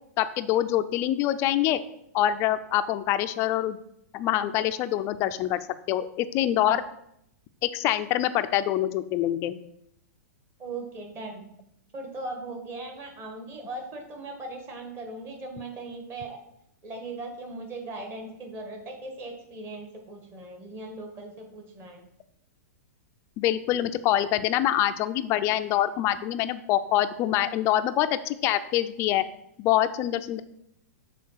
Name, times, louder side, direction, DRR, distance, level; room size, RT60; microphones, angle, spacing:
voice 1, 0.2-1.8 2.1-3.8 4.1-5.6 5.9-6.8 7.6-9.6 23.4-29.2 29.6-30.4, left 12 dB, 30° left, 12 dB, 0.4 m, -25 dB
voice 2, 10.6-11.4 11.9-16.4 16.8-22.0, right 2 dB, 25° right, 3 dB, 1.5 m, -39 dB
6.5 x 3.8 x 5.6 m, 0.76 s
hypercardioid pair, 145°, 9 cm